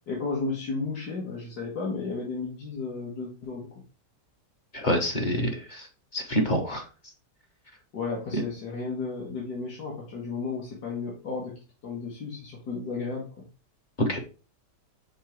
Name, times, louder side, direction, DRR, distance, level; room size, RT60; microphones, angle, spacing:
voice 1, 0.1-3.7 7.9-11.5 11.8-13.5, left 4 dB, 65° left, -3 dB, 1.9 m, -33 dB
voice 2, 4.7-5.9 6.1-6.8 8.3-8.4 14.0-14.2, equal, 35° left, 3 dB, 0.8 m, -26 dB
5.5 x 3.8 x 4.6 m, 0.34 s
omnidirectional pair, 1.9 m